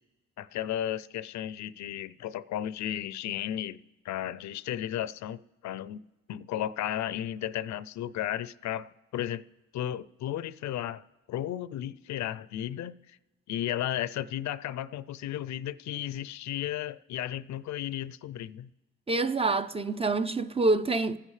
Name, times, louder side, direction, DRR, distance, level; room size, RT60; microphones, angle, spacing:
voice 1, 0.4-3.8 4.0-6.0 6.3-9.4 9.7-11.0 11.3-13.2 13.5-18.7, left 11 dB, 65° left, 0.5 m, -34 dB
voice 2, 19.1-21.2, right 3 dB, 20° right, 0.5 m, -26 dB
27.0 x 9.7 x 3.2 m
cardioid pair, 90°, 30 cm